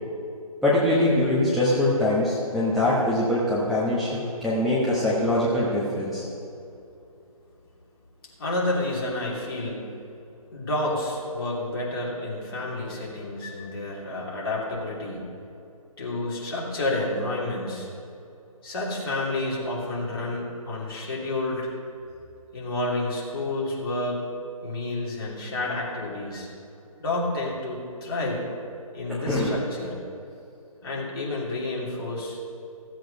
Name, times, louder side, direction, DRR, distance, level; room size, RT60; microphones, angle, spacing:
voice 1, 0.6-6.2 29.1-29.5, left 1 dB, ahead, -11 dB, 1.1 m, -23 dB
voice 2, 8.4-9.9 10.5-15.2 16.0-17.9 18.6-21.7 22.5-24.2 24.6-26.5 27.0-28.5 28.9-30.0 30.8-32.4, left 2 dB, 40° left, -4 dB, 3.0 m, -30 dB
15.5 x 7.7 x 5.3 m, 2.7 s
figure-of-eight pair, 150°, 19 cm